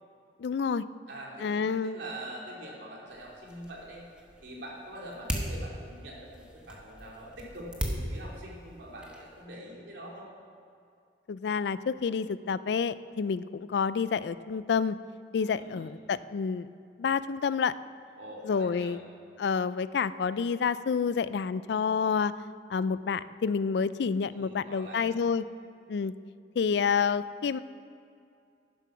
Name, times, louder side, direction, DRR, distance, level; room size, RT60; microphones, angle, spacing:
voice 1, 0.4-0.8 1.4-2.0 11.3-15.0 15.3-16.7 17.0-17.7 18.4-19.0 19.4-22.3 22.7-25.4 25.9-26.1 26.6-27.6, left 6 dB, 70° left, 16 dB, 0.3 m, -28 dB
voice 2, 1.1-4.0 4.4-10.3 15.4-15.9 18.2-19.0 24.3-25.1, right 1 dB, 75° right, -4 dB, 3.1 m, -44 dB
sound 1, 3.1-9.4, equal, 5° right, 1.2 m, -39 dB
10.5 x 10.5 x 6.1 m, 2.4 s
head